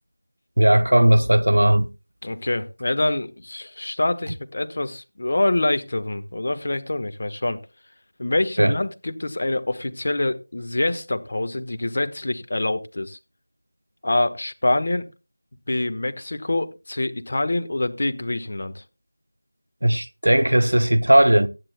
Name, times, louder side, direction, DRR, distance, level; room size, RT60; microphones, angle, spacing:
voice 1, 0.6-1.9 8.6-8.7 19.8-21.5, right 1 dB, 85° right, 0.9 m, -17 dB
voice 2, 2.2-7.6 8.2-13.2 14.0-15.0 15.7-18.8, left 2 dB, 45° left, 1.3 m, -25 dB
18.0 x 11.0 x 2.2 m
figure-of-eight pair, 175°, 0 cm